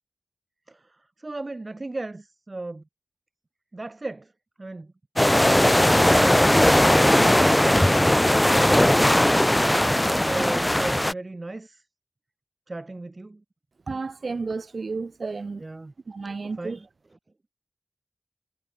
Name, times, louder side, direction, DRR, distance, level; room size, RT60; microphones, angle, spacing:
voice 1, 0.7-2.8 3.7-4.3 4.6-4.9 10.2-11.8 12.7-13.4 15.6-15.9 16.6-16.9, right 2 dB, 40° right, 0.7 m, -36 dB
sound 1, 5.2-11.1, left 1 dB, 15° left, 0.4 m, -18 dB
voice 2, 13.9-15.6 16.1-16.8, right 4 dB, 75° right, 1.6 m, -32 dB
wide cardioid pair, 70°, 0 cm